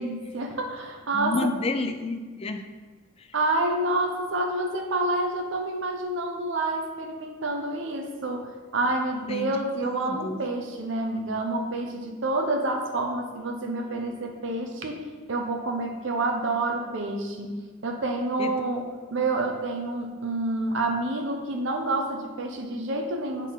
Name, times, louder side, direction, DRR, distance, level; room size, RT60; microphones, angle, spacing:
voice 1, 0.0-1.5 3.3-18.8 19.1-23.5, right 2 dB, 70° right, 3 dB, 0.7 m, -28 dB
voice 2, 1.1-2.7 9.3-9.6 10.0-10.4 18.4-18.5, left 3 dB, 30° left, 8 dB, 0.4 m, -30 dB
8.1 x 4.1 x 3.8 m, 1.4 s
head